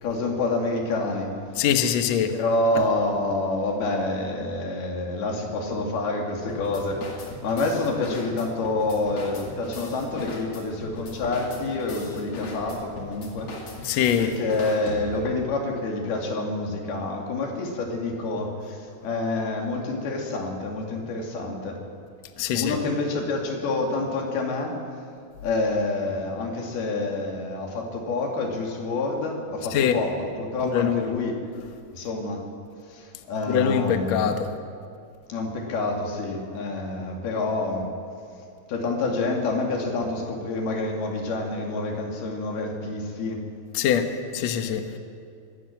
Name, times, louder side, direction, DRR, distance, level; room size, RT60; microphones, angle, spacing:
voice 1, 0.0-1.4 2.3-7.0 7.4-13.5 14.2-21.8 22.5-24.8 25.4-31.4 31.9-32.5 32.9-34.4 35.3-37.9 38.7-43.4, left 2 dB, 65° left, 0 dB, 4.4 m, -27 dB
voice 2, 1.6-2.3 13.8-14.3 22.4-22.8 29.7-30.0 30.7-31.1 33.5-34.5 43.7-44.9, left 9 dB, 90° left, 6 dB, 1.5 m, -23 dB
sound 1, 6.5-15.4, left 3 dB, 45° left, 3.2 m, -39 dB
22.5 x 12.5 x 9.2 m, 2.4 s
omnidirectional pair, 5.1 m